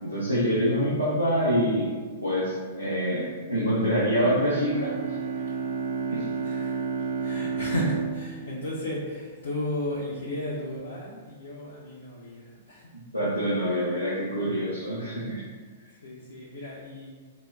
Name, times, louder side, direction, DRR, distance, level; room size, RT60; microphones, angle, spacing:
voice 1, 0.0-1.9 2.2-5.2 6.1-6.2 13.1-15.5, equal, 90° right, -8 dB, 0.7 m, -26 dB
Bowed string instrument, 4.1-9.6, right 5 dB, 55° right, 0.5 m, -32 dB
voice 2, 5.4-5.9 6.3-12.9 16.0-17.1, left 1 dB, 65° left, -5 dB, 0.6 m, -34 dB
4.0 x 2.1 x 3.5 m, 1.5 s
figure-of-eight pair, 105°, 0 cm